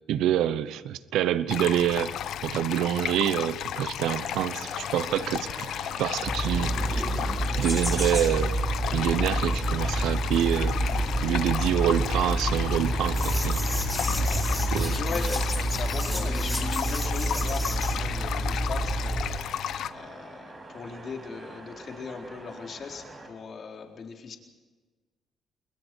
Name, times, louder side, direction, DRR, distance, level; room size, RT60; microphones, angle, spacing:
voice 1, 0.1-5.7 6.0-7.0 7.6-8.6 8.9-13.6 14.7-15.0, right 11 dB, 85° right, 14 dB, 0.9 m, -27 dB
sound 1, 1.5-19.9, left 10 dB, 75° left, 0.9 m, -34 dB
sound 2, 4.0-23.3, right 2 dB, 30° right, 7.0 m, -44 dB
sound 3, 6.2-19.3, right 1 dB, 5° left, 4.9 m, -28 dB
voice 2, 14.9-24.4, left 5 dB, 55° left, 2 dB, 4.0 m, -39 dB
28.5 x 21.5 x 4.6 m, 1.3 s
cardioid pair, 90°, 0 cm